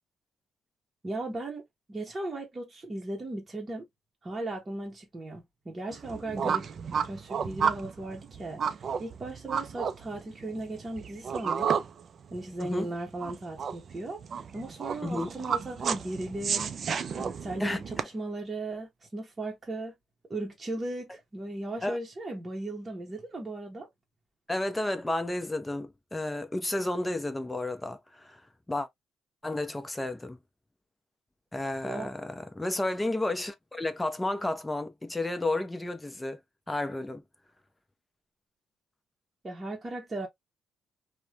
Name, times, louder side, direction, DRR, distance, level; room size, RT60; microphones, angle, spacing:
voice 1, 1.0-1.6 1.9-3.9 4.2-6.7 6.9-11.7 12.3-14.2 14.5-16.7 17.1-19.9 20.3-23.9 31.8-32.1 39.4-40.3, right 2 dB, 25° right, 0.8 m, -37 dB
sound 1, 5.9-18.0, right 7 dB, 55° right, 0.4 m, -32 dB
voice 2, 17.6-18.1 21.8-22.0 24.5-28.4 28.7-28.9 29.4-30.4 31.5-36.4 36.7-37.2, left 2 dB, 15° left, 0.6 m, -32 dB
3.0 x 2.1 x 2.3 m
cardioid pair, 90°, 0 cm